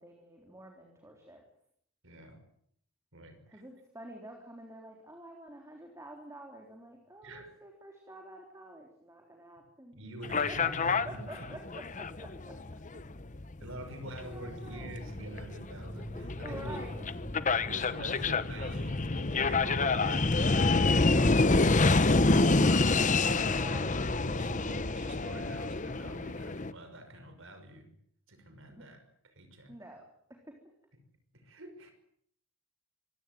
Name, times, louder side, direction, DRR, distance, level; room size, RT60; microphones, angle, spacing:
voice 1, 0.0-1.4 3.5-10.0 10.5-12.6 14.2-15.1 16.4-16.9 23.4-24.0 28.7-28.8 29.7-30.4, right 1 dB, 15° right, 1 dB, 3.7 m, -48 dB
voice 2, 2.0-2.4 3.1-3.6 7.2-7.5 9.9-11.5 13.6-16.8 17.5-27.9 28.3-29.7 31.3-31.9, right 1 dB, 60° right, 8 dB, 5.9 m, -46 dB
sound 1, 10.2-26.7, left 3 dB, 35° left, 1.0 m, -28 dB
sound 2, 14.8-19.3 19.5-19.6, equal, 5° left, 2.3 m, -46 dB
25.5 x 17.0 x 9.3 m, 0.69 s
head